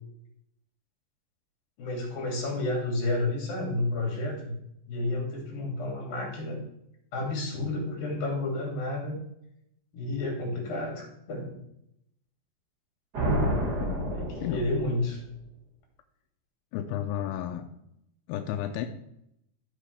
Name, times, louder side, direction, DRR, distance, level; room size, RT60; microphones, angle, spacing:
voice 1, 1.8-4.6 4.9-6.6 7.1-9.2 9.9-11.6 14.1-15.2, left 2 dB, 55° left, -1 dB, 4.2 m, -31 dB
sound 1, 13.1-15.1, right 1 dB, 45° right, 1.2 m, -29 dB
voice 2, 13.8-14.6 16.7-17.7 18.3-18.9, left 11 dB, 80° left, 5 dB, 2.3 m, -33 dB
14.5 x 5.5 x 3.4 m, 0.77 s
omnidirectional pair, 5.2 m